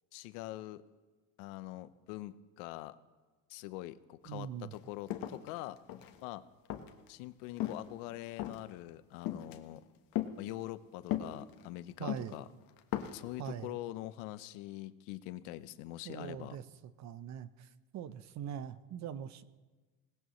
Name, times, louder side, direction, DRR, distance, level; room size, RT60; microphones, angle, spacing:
voice 1, 0.1-0.8 1.4-3.0 3.5-5.8 6.2-6.4 7.1-9.8 10.4-12.5 13.1-16.6, left 16 dB, 70° left, 13 dB, 0.9 m, -44 dB
voice 2, 4.3-4.7 12.0-12.3 13.4-13.8 16.0-16.6 17.0-19.4, right 9 dB, 40° right, 14 dB, 0.8 m, -42 dB
sound 1, 4.7-4.8 5.1-6.2 6.7-7.1 7.6-7.9 8.4-8.7 9.3-9.6 10.1-10.3 11.1-11.7 12.1-12.3 12.8-13.2, left 12 dB, 55° left, 1.4 m, -36 dB
20.5 x 18.0 x 3.2 m, 1.3 s
supercardioid pair, 120°, 41 cm